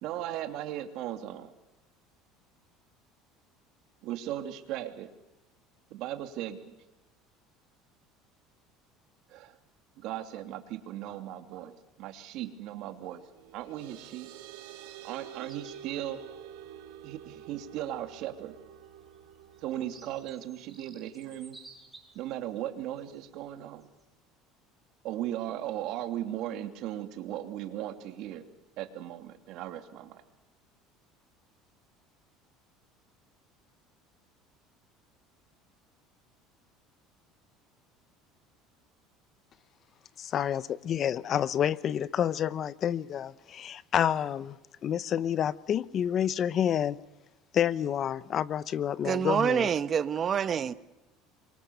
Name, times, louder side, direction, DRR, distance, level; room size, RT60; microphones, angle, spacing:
voice 1, 0.0-1.5 4.0-5.1 5.9-6.7 9.3-9.6 10.0-13.2 13.5-14.3 15.0-16.2 17.0-18.6 19.6-21.6 22.1-23.9 25.0-28.4 28.8-30.2, right 12 dB, 65° right, 2.7 m, -37 dB
sound 1, 13.2-20.3, right 10 dB, 85° right, 3.5 m, -48 dB
sound 2, 15.4-15.8 17.4-17.5 18.6-22.3 23.0-23.2 23.8-24.0, right 3 dB, 10° right, 6.9 m, -54 dB
voice 2, 40.2-44.6 44.8-47.0 47.5-49.7, left 9 dB, 40° left, 0.9 m, -29 dB
voice 3, 49.0-50.7, right 7 dB, 35° right, 1.1 m, -27 dB
27.5 x 24.0 x 7.0 m
supercardioid pair, 120°, 0 cm